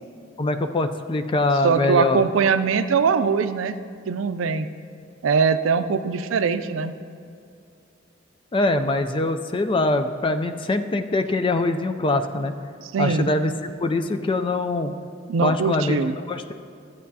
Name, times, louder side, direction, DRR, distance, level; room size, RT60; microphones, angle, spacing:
voice 1, 0.4-2.2 8.5-12.5 13.0-14.9 15.4-16.0 16.3-16.5, left 2 dB, 25° left, 8 dB, 0.4 m, -23 dB
voice 2, 1.6-3.7 4.1-4.7 5.2-6.9 12.8-13.3 15.3-16.2, right 5 dB, 85° right, 11 dB, 0.4 m, -21 dB
13.5 x 8.4 x 2.8 m, 2.4 s
head